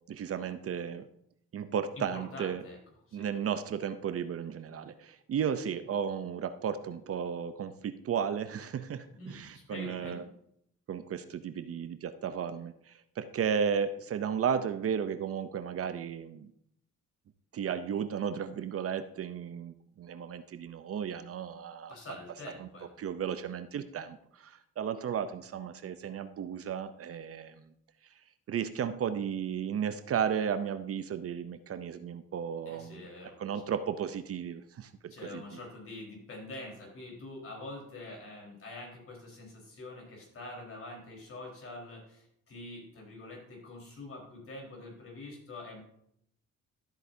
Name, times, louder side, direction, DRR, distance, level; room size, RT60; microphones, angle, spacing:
voice 1, 0.1-1.1 1.5-2.6 3.1-10.2 10.9-16.5 17.5-22.0 22.6-22.7 23.0-27.6 28.5-33.1 33.4-35.6, right 7 dB, 50° right, 11 dB, 0.6 m, -34 dB
voice 2, 2.0-2.8 3.1-3.3 9.1-10.3 21.9-22.9 32.7-33.4 35.1-45.8, left 2 dB, 50° left, -1 dB, 4.2 m, -45 dB
13.0 x 7.9 x 2.7 m, 0.72 s
cardioid pair, 90°, 30 cm